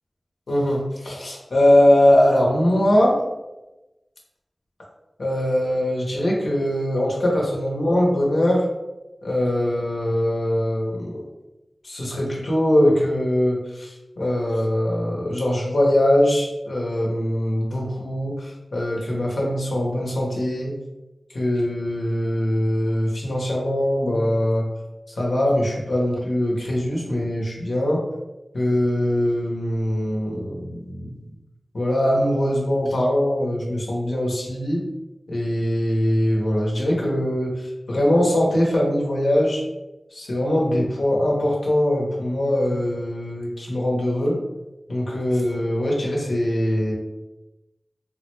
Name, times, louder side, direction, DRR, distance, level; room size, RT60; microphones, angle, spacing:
voice 1, 0.5-3.2 5.2-8.7 9.2-11.2 11.8-20.7 21.3-24.6 25.2-28.0 28.5-31.2 31.7-34.8 35.3-39.6 40.1-44.4 44.9-46.9, left 1 dB, 85° left, -3 dB, 0.7 m, -22 dB
3.3 x 2.1 x 3.0 m, 1.0 s
cardioid pair, 40°, 0 cm